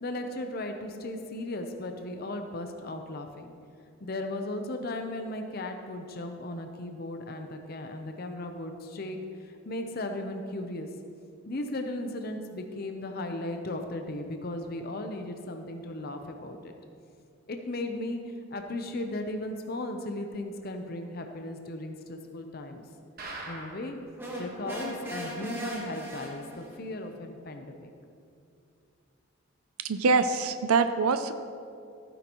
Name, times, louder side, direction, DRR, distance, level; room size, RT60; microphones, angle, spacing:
voice 1, 0.0-3.5 4.0-10.9 11.5-16.7 17.5-22.8 23.5-24.0 24.4-27.9, left 1 dB, 45° left, 5 dB, 0.7 m, -36 dB
sound 1, 23.2-24.0 24.4-24.5 24.7-24.8 25.3-25.4, right 2 dB, 45° right, 1.4 m, -41 dB
sound 2, 24.2-26.8, equal, 10° right, 1.3 m, -38 dB
voice 2, 29.8-31.3, right 4 dB, 90° right, 10 dB, 0.5 m, -24 dB
15.0 x 9.3 x 3.0 m, 2.4 s
head